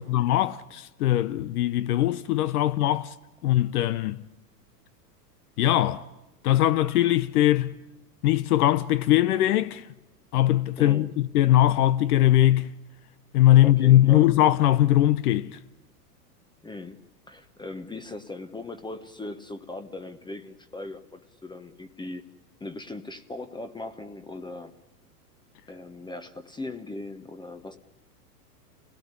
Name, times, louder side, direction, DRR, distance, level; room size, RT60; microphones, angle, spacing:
voice 1, 0.0-3.1 3.4-4.2 5.6-6.1 6.4-7.7 8.2-9.8 10.3-12.7 13.3-15.6, left 13 dB, 65° left, 0.9 m, -21 dB
voice 2, 10.8-11.1 13.6-14.3 16.6-17.0 17.3-22.2 22.6-24.7 25.7-27.8, left 2 dB, 10° left, 1.0 m, -39 dB
28.5 x 17.5 x 9.7 m
hypercardioid pair, 105°, 49 cm